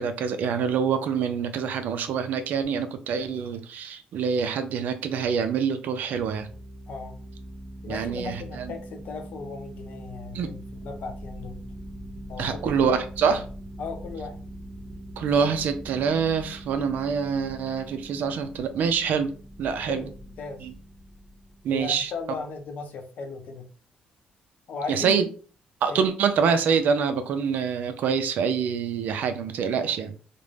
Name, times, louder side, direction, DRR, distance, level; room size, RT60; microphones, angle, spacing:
voice 1, 0.0-6.5 7.9-8.7 10.3-10.5 12.4-13.5 15.2-19.3 19.6-20.0 20.6-20.7 21.6-22.1 24.9-25.2 25.8-30.1, right 6 dB, 75° right, 0.4 m, -25 dB
sound 1, 6.1-22.4, right 1 dB, 15° right, 0.5 m, -42 dB
voice 2, 7.8-11.6 12.3-12.8 13.8-14.4 19.9-20.1 20.4-20.7 21.7-23.7 24.7-25.2 25.9-26.1, left 4 dB, 65° left, 0.6 m, -37 dB
2.5 x 2.1 x 3.2 m
cardioid pair, 115°, 3 cm